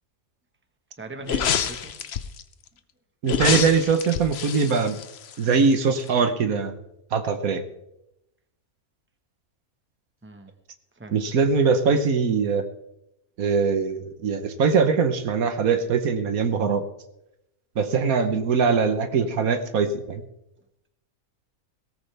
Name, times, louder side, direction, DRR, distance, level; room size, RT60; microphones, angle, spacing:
voice 1, 1.0-2.0 10.2-10.5 11.0-11.2, right 1 dB, 10° right, 5 dB, 1.2 m, -39 dB
sound 1, 1.2-2.4 3.2-5.7 6.0-6.1, left 8 dB, 55° left, 0.9 m, -27 dB
voice 2, 3.2-5.0 5.4-6.7 7.1-7.6 11.1-12.6 13.4-16.8 17.8-20.2, right 5 dB, 75° right, 8 dB, 1.5 m, -22 dB
17.5 x 13.5 x 3.4 m, 0.87 s
omnidirectional pair, 1.5 m